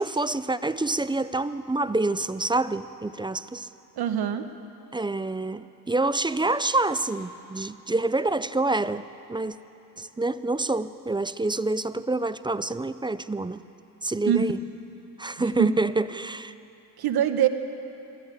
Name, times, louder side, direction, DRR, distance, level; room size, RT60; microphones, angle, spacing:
voice 1, 0.0-3.7 4.9-9.6 10.0-13.6 14.0-14.6 15.2-16.5, right 2 dB, 10° right, 14 dB, 0.5 m, -27 dB
voice 2, 4.0-4.4 14.3-14.4 15.6-15.7 17.0-17.5, right 10 dB, 75° right, 9 dB, 1.2 m, -23 dB
23.0 x 14.5 x 8.1 m, 2.9 s
cardioid pair, 100°, 38 cm